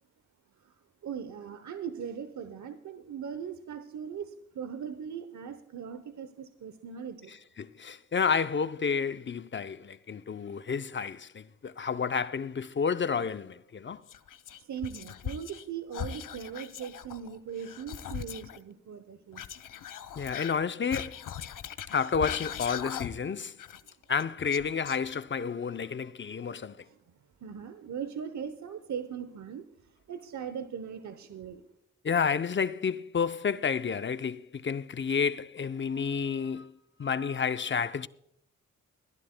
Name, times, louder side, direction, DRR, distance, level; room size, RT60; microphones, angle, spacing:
voice 1, 1.0-7.4 14.6-19.5 26.8-31.6, right 7 dB, 65° right, 0.8 m, -40 dB
voice 2, 7.3-14.0 20.2-21.2 21.9-23.6 24.1-26.8 32.0-36.7 37.0-38.1, left 6 dB, 35° left, 0.6 m, -30 dB
Whispering, 14.1-15.7 15.9-18.6 19.3-23.3 23.6-25.4, left 9 dB, 80° left, 0.7 m, -40 dB
24.0 x 11.0 x 2.2 m
cardioid pair, 65°, 31 cm